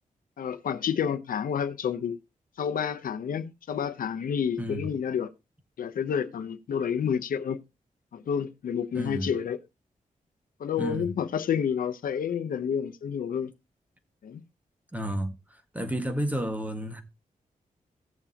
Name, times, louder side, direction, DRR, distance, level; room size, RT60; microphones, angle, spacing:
voice 1, 0.4-2.2 2.6-5.3 5.8-7.6 8.1-9.6 10.6-13.5 14.2-14.4, left 7 dB, 90° left, 0.8 m, -29 dB
voice 2, 4.6-4.9 8.9-9.3 10.8-11.1 14.9-15.4 15.7-17.0, right 1 dB, 10° right, 1.7 m, -31 dB
17.0 x 7.1 x 2.9 m
wide cardioid pair, 120°, 14 cm